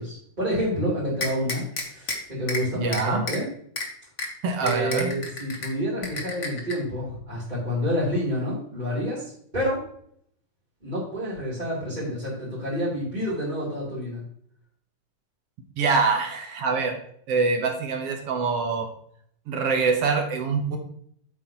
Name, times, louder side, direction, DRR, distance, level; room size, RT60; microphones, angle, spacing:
voice 1, 0.0-3.5 4.6-9.9 10.8-14.2, equal, 15° right, -11 dB, 3.1 m, -28 dB
sound 1, 1.2-2.2 2.5-2.6 2.9-3.4 3.8-3.9 4.2-4.3 4.7-5.7 6.0-6.7, left 3 dB, 65° left, 0.7 m, -30 dB
voice 2, 2.7-3.2 4.4-5.1 15.8-17.0 17.3-18.9 19.5-20.8, right 4 dB, 65° right, 4 dB, 1.6 m, -24 dB
9.6 x 8.1 x 3.0 m, 0.66 s
omnidirectional pair, 3.8 m